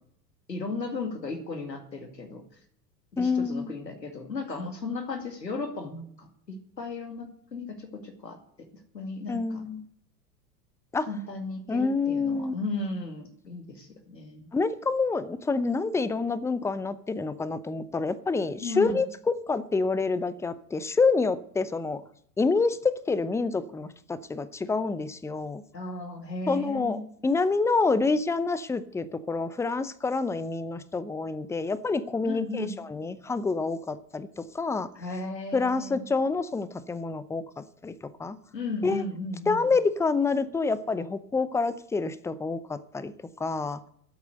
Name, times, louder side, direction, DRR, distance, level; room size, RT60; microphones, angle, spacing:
voice 1, 0.5-2.4 3.1-8.4 8.9-9.6 11.0-14.5 18.6-19.0 25.7-27.1 32.2-32.8 35.0-36.1 38.5-39.6, left 3 dB, 90° left, 6 dB, 2.3 m, -35 dB
voice 2, 3.2-3.7 9.3-9.8 10.9-11.1 11.7-12.5 14.5-22.0 22.4-25.6 26.5-34.9 35.5-37.9 38.2-38.4 38.8-39.0 39.5-43.1 43.4-43.8, left 4 dB, 5° left, 15 dB, 0.6 m, -27 dB
13.0 x 8.5 x 7.9 m, 0.65 s
figure-of-eight pair, 85°, 49 cm